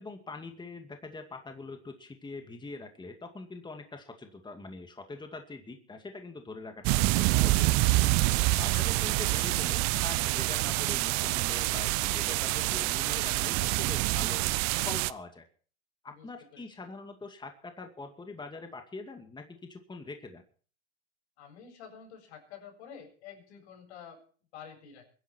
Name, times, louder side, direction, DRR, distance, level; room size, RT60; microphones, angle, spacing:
voice 1, 0.0-7.9 8.2-14.4 14.9-15.5 16.0-20.4, left 3 dB, 15° left, 5 dB, 2.3 m, -43 dB
sound 1, 6.8-15.1, right 20 dB, 55° right, 0.8 m, -27 dB
voice 2, 8.3-8.6 16.1-16.6 21.4-24.2 24.5-25.1, left 7 dB, 80° left, 2 dB, 7.7 m, -49 dB
23.5 x 10.5 x 4.6 m, 0.43 s
supercardioid pair, 105°, 33 cm